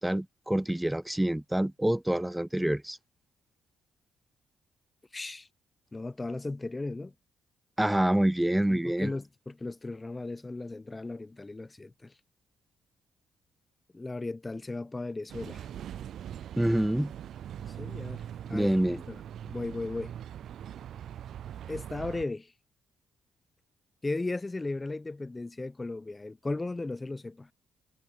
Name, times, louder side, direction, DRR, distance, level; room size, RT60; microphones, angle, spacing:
voice 1, 0.0-3.0 7.8-9.1 16.6-17.1 18.5-19.0, right 1 dB, 5° right, 0.6 m, -27 dB
voice 2, 5.1-5.5 5.9-7.1 8.7-12.1 13.9-15.7 17.7-20.1 21.7-22.5 24.0-27.5, left 2 dB, 20° left, 0.9 m, -36 dB
sound 1, 15.3-22.3, right 10 dB, 70° right, 0.4 m, -41 dB
cardioid pair, 90°, 0 cm